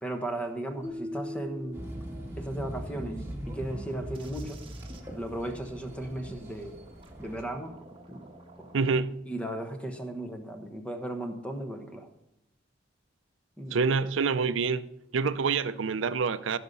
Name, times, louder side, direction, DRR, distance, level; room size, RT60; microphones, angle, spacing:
voice 1, 0.0-1.8 2.4-4.6 5.1-6.8 7.2-8.3 8.6-8.7 9.3-12.1 13.6-13.8 15.2-15.3, right 1 dB, 5° left, 1.2 m, -36 dB
sound 1, 0.8-3.0, left 1 dB, 35° left, 2.5 m, -41 dB
sound 2, 1.7-7.4, right 1 dB, 15° right, 2.1 m, -40 dB
sound 3, 3.3-8.9, right 2 dB, 30° right, 1.4 m, -54 dB
voice 2, 8.7-9.2 13.7-14.8 15.1-16.6, right 5 dB, 80° right, 0.5 m, -26 dB
15.5 x 6.6 x 5.5 m
head